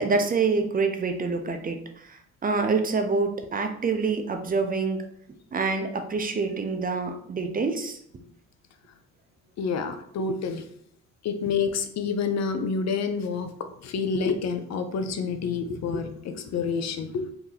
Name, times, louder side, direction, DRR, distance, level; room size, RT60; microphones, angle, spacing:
voice 1, 0.0-5.0 5.5-8.0, right 4 dB, 30° right, 6 dB, 0.5 m, -26 dB
voice 2, 9.6-10.6 11.2-17.3, left 5 dB, 60° left, 7 dB, 0.5 m, -28 dB
2.8 x 2.6 x 3.8 m, 0.65 s
cardioid pair, 90°, 30 cm